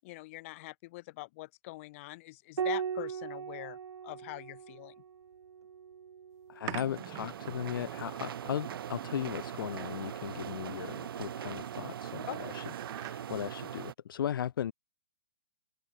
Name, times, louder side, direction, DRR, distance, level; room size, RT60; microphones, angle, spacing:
voice 1, 0.0-3.8 4.0-4.9 12.3-12.4, left 21 dB, 30° left, 7.9 m, -43 dB
Piano, 2.6-7.4 9.1-9.9, right 7 dB, 85° right, 1.3 m, -40 dB
voice 2, 6.5-12.6 12.9-14.7, left 10 dB, 50° left, 3.6 m, -37 dB
sound 1, 6.7-13.2, right 24 dB, 20° right, 2.6 m, -47 dB
sound 2, 6.7-13.9, right 9 dB, 55° right, 3.3 m, -41 dB
hypercardioid pair, 170°, 14 cm